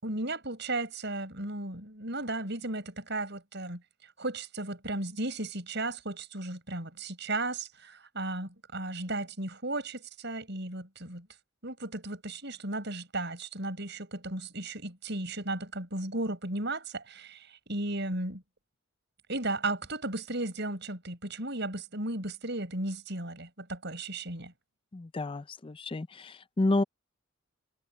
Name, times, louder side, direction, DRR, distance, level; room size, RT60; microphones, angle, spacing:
voice 1, 0.0-3.8 4.2-11.3 11.6-18.4 19.3-24.5, right 2 dB, 60° right, 7.4 m, -35 dB
voice 2, 24.9-26.8, left 2 dB, 25° left, 0.5 m, -30 dB
head